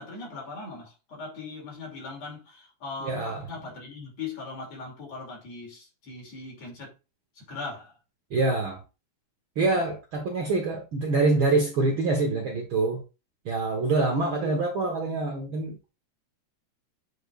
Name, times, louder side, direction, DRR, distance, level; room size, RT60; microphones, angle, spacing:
voice 1, 0.0-6.9 7.3-8.0 14.3-14.6, left 3 dB, 60° left, 3.7 m, -39 dB
voice 2, 3.0-3.4 8.3-8.8 9.6-13.0 13.4-15.7, right 3 dB, 60° right, 1.4 m, -25 dB
7.9 x 5.0 x 2.4 m
omnidirectional pair, 3.4 m